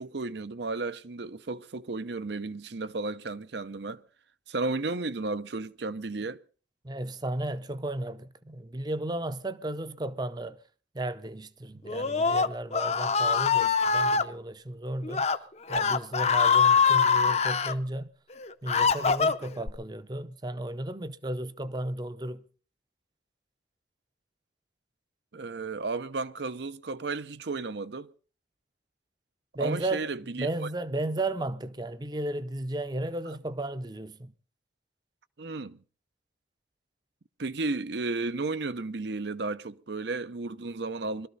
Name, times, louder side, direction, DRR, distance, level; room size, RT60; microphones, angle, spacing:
voice 1, 0.0-4.0 4.5-6.4 25.3-28.1 29.6-30.5 33.3-33.4 35.4-35.8 37.4-41.3, right 3 dB, 70° right, 0.7 m, -33 dB
voice 2, 6.8-10.6 10.9-15.3 15.7-18.1 18.6-22.4 29.5-30.1 30.4-34.3, right 1 dB, 20° right, 0.6 m, -34 dB
Screaming, 11.9-14.2 15.0-15.4 15.7-17.7 18.3-19.7, left 5 dB, 35° left, 0.6 m, -24 dB
22.0 x 13.0 x 4.0 m
head